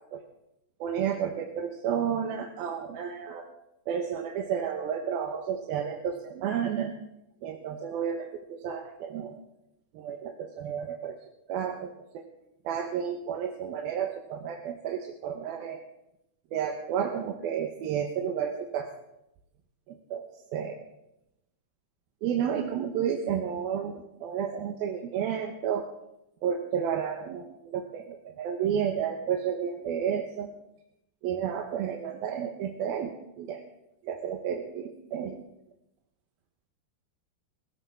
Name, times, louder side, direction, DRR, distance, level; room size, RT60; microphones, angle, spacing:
voice 1, 0.8-3.5 3.9-6.9 7.4-9.4 9.9-11.2 11.5-12.2 12.7-15.8 16.5-18.9 20.1-20.3 20.5-20.8 22.2-25.9 26.4-30.5 31.2-33.1 33.4-33.6 34.1-35.4, right 8 dB, 85° right, 3 dB, 3.0 m, -31 dB
21.0 x 15.5 x 3.6 m, 0.86 s
omnidirectional pair, 4.2 m